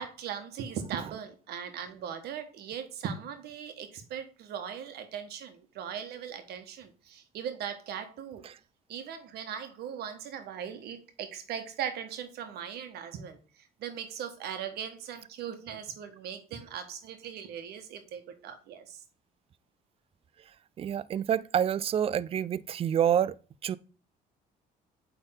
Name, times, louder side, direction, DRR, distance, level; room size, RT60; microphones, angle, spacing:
voice 1, 0.0-8.4 8.9-19.0, right 8 dB, 75° right, 1.3 m, -39 dB
voice 2, 20.8-23.3 23.6-23.8, right 9 dB, 35° right, 0.4 m, -27 dB
8.9 x 3.6 x 3.8 m
cardioid pair, 110°, 17 cm